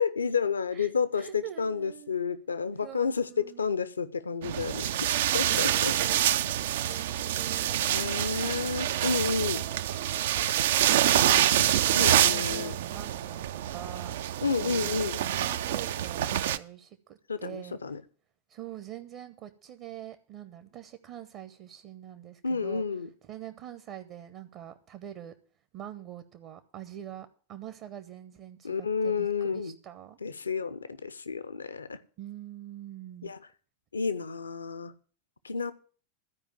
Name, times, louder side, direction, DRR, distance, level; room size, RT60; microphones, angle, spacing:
voice 1, 0.0-5.1 5.3-5.9 7.9-9.7 11.9-12.8 14.4-15.2 17.3-18.0 22.4-23.1 28.6-29.7 30.2-32.0 33.2-33.4 33.9-34.9 35.4-35.7, left 5 dB, 75° left, 0.7 m, -30 dB
voice 2, 1.2-2.1 2.8-3.6 5.1-8.1 8.4-8.5 9.4-11.6 11.8-13.4 13.7-14.1 14.6-17.8 18.5-22.8 23.3-25.3 25.7-30.2 32.2-33.3, right 11 dB, 40° right, 0.8 m, -44 dB
sound 1, 4.4-16.6, right 11 dB, 55° right, 0.4 m, -26 dB
13.0 x 5.0 x 8.9 m
figure-of-eight pair, 90°, 0 cm